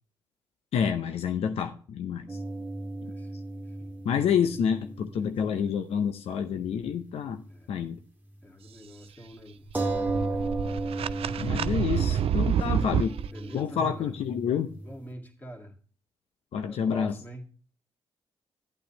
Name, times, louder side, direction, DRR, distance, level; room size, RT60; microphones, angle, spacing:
voice 1, 0.7-2.4 3.0-3.1 4.0-7.4 7.7-8.0 11.4-13.1 13.5-14.7 16.5-17.2, left 7 dB, 80° left, 8 dB, 0.6 m, -28 dB
sound 1, 2.3-6.2 6.4-6.5 9.7-15.0, right 2 dB, 20° right, 1.6 m, -35 dB
voice 2, 3.1-3.9 5.2-5.6 7.5-7.8 8.4-9.7 10.1-10.6 12.4-12.9 13.3-14.1 14.8-15.8 16.7-17.4, right 1 dB, 15° left, 1 dB, 2.3 m, -45 dB
sound 2, 9.7-13.3, right 9 dB, 70° right, 0.4 m, -28 dB
9.9 x 8.8 x 2.9 m, 0.41 s
cardioid pair, 60°, 10 cm